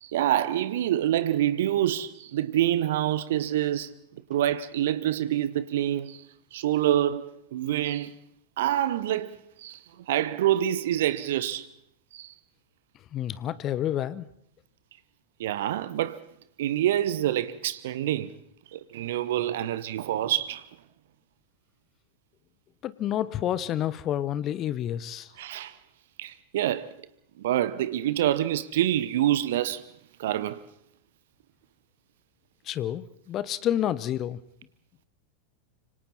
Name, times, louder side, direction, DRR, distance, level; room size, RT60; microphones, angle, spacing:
voice 1, 0.0-3.9 4.3-8.1 8.6-9.8 10.1-11.7 12.1-12.3 15.4-16.2 16.6-18.3 18.7-20.6 25.4-25.8 26.2-26.9 27.4-29.9 30.2-30.6, right 12 dB, 55° right, 1.0 m, -26 dB
voice 2, 13.1-14.2 22.8-25.3 32.7-34.4, left 11 dB, 30° left, 1.0 m, -29 dB
26.5 x 25.0 x 4.2 m
figure-of-eight pair, 90°, 0 cm